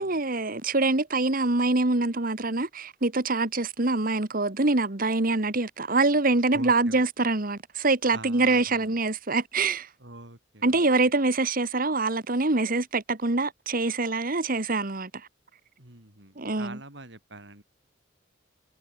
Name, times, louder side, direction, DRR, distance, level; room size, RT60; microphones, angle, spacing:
voice 1, 0.0-9.9 10.6-15.1 16.4-16.8, right 3 dB, 45° right, 1.6 m, -25 dB
voice 2, 6.5-7.0 8.1-8.9 10.0-10.8 15.8-17.6, right 2 dB, 60° right, 5.2 m, -44 dB
head